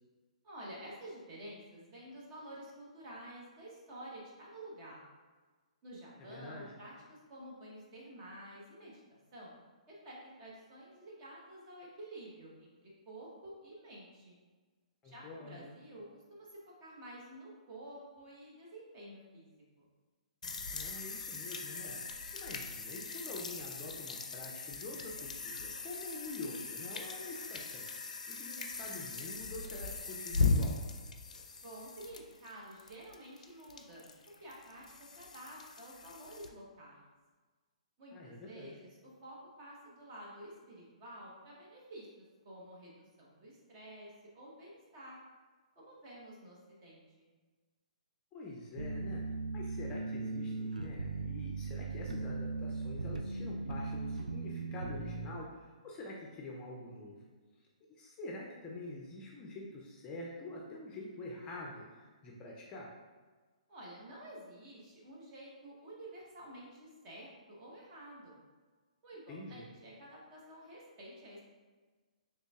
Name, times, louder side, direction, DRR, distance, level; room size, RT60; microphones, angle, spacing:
voice 1, 0.4-5.0 5.8-9.6 9.9-14.4 15.0-19.5 19.8-19.9 31.6-34.1 34.4-34.8 35.1-37.0 38.0-42.1 42.4-45.2 45.8-47.3 63.7-68.4 69.0-71.4, right 1 dB, 35° right, -5 dB, 1.2 m, -50 dB
voice 2, 6.3-6.8 15.0-15.7 20.7-30.8 38.1-38.8 48.3-49.2 49.5-57.3 57.9-62.9 69.3-69.6, left 2 dB, 20° left, -2 dB, 0.5 m, -46 dB
sound 1, 20.4-36.5, left 3 dB, 75° left, 0.4 m, -39 dB
sound 2, 48.8-55.3, right 3 dB, 90° right, 0.3 m, -38 dB
3.8 x 3.2 x 2.3 m, 1.3 s
hypercardioid pair, 130°, 4 cm